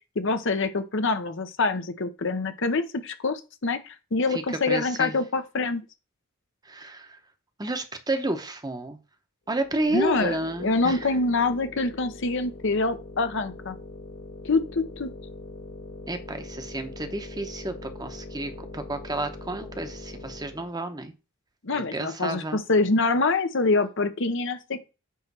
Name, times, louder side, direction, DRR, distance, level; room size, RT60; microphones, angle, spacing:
voice 1, 0.2-5.8 9.9-13.8 14.4-15.1 21.6-24.8, left 3 dB, 60° left, 0.8 m, -25 dB
voice 2, 4.3-5.2 6.7-7.2 7.6-9.0 9.5-11.0 16.1-21.1 21.7-22.6, right 2 dB, 20° right, 0.9 m, -31 dB
sound 1, 9.5-20.7, left 2 dB, 80° left, 4.5 m, -42 dB
9.4 x 3.2 x 6.0 m
head